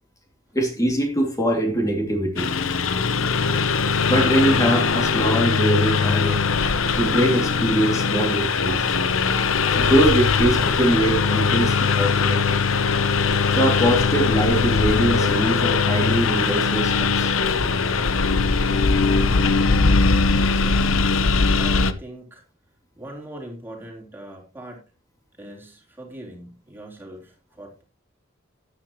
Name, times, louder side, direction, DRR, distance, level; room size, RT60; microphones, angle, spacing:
voice 1, 0.5-2.5 4.1-6.5 7.0-8.9 9.8-12.4 13.5-17.3, right 1 dB, 15° left, 2.6 m, -22 dB
Engine, 2.4-21.9, left 4 dB, 80° left, 0.9 m, -20 dB
voice 2, 20.5-21.1 21.5-22.4 23.0-24.8 25.4-27.8, right 1 dB, 10° right, 3.6 m, -40 dB
13.5 x 10.0 x 3.0 m
head